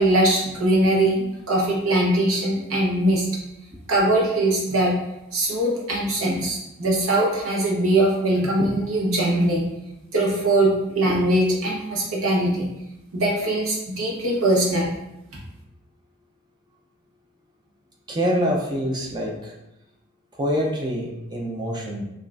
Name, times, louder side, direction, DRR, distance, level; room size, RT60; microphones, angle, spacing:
voice 1, 0.0-3.3 3.9-5.0 5.3-9.6 10.1-12.7 13.1-14.9, right 1 dB, 65° right, -2 dB, 1.0 m, -21 dB
voice 2, 18.1-19.5 20.3-22.0, equal, 20° right, -1 dB, 0.5 m, -25 dB
5.2 x 2.4 x 2.4 m, 0.88 s
head